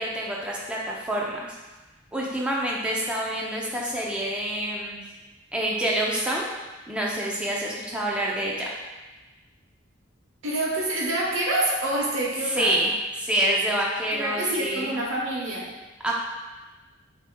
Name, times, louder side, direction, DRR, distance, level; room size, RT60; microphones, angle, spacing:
voice 1, 0.0-1.5 2.1-5.0 5.5-6.5 6.9-8.7 12.4-12.9 13.2-15.0 16.0-16.1, right 1 dB, 5° right, -4 dB, 0.6 m, -27 dB
voice 2, 10.4-12.8 14.1-15.7, right 1 dB, 85° right, -4 dB, 1.1 m, -27 dB
6.9 x 2.9 x 2.3 m, 1.2 s
head